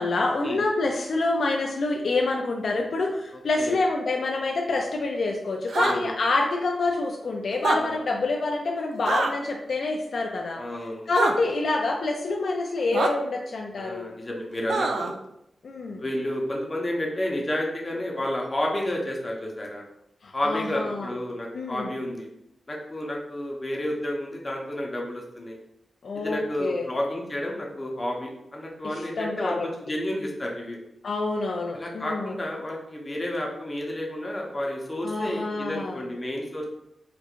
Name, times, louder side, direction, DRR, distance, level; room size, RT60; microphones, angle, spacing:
voice 1, 0.0-10.6 11.1-14.1 15.6-16.0 20.2-21.1 21.5-21.9 26.0-26.8 28.8-29.7 31.0-32.3 35.0-36.0, left 3 dB, 70° left, 1 dB, 0.4 m, -27 dB
voice 2, 3.3-3.8 5.7-6.1 7.7-8.0 10.5-11.1 13.8-15.1 16.0-19.9 20.3-22.3 22.7-25.6 26.1-30.8 31.7-36.6, left 1 dB, 25° left, -1 dB, 0.7 m, -31 dB
sound 1, 5.7-6.0 7.5-7.8 9.1-9.3 11.1-11.3 12.9-13.1 14.7-15.1, right 3 dB, 85° right, 0.3 m, -24 dB
4.4 x 2.4 x 2.4 m, 0.81 s
wide cardioid pair, 110°, 0 cm